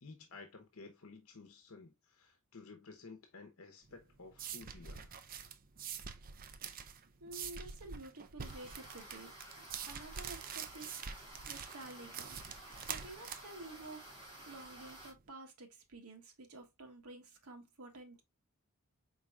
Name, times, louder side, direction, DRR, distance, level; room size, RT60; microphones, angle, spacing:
voice 1, 0.0-5.1, left 3 dB, 70° left, 0.9 m, -54 dB
sound 1, 3.9-15.2, right 7 dB, 40° right, 0.5 m, -46 dB
voice 2, 7.2-9.3 9.8-11.2 11.5-14.1 14.4-18.2, right 2 dB, 90° right, 1.3 m, -51 dB
sound 2, 8.4-15.1, right 1 dB, 25° right, 1.9 m, -53 dB
4.5 x 3.9 x 2.3 m
head